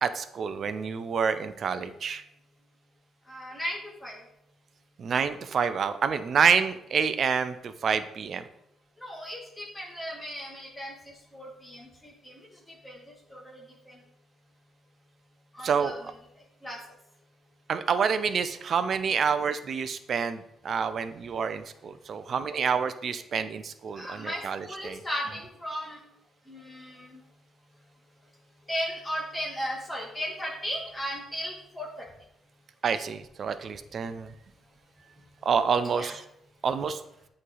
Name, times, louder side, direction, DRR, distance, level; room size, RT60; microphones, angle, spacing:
voice 1, 0.0-2.2 5.0-8.4 15.6-15.9 17.7-25.0 32.8-34.3 35.5-36.2 36.6-37.0, right 6 dB, 55° right, 11 dB, 0.5 m, -28 dB
voice 2, 3.3-4.2 9.0-12.3 12.8-13.6 13.9-14.0 15.5-16.1 16.6-16.8 23.9-26.0 26.5-27.2 28.7-32.0 35.8-36.1, equal, 15° left, -3 dB, 1.3 m, -36 dB
8.3 x 3.2 x 3.9 m, 0.77 s
cardioid pair, 90°, 0 cm